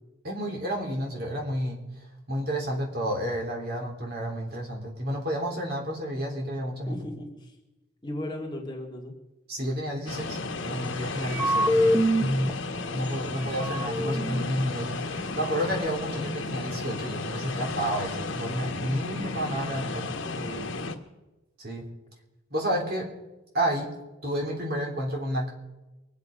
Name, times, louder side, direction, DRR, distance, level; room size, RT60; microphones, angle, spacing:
voice 1, 0.2-1.8 2.3-7.0 9.5-11.9 12.9-20.1 21.6-21.9 22.5-23.1 23.5-23.9 24.2-25.5, equal, 50° right, 0 dB, 3.4 m, -31 dB
voice 2, 6.9-7.5 8.0-9.1 20.2-20.7, left 1 dB, 25° left, -1 dB, 2.2 m, -37 dB
sound 1, 10.1-20.9, left 3 dB, 80° left, 1.4 m, -33 dB
sound 2, 11.3-12.5 13.0-13.1 13.4-14.7, equal, 10° right, 0.9 m, -25 dB
24.0 x 8.4 x 5.3 m, 1.0 s
head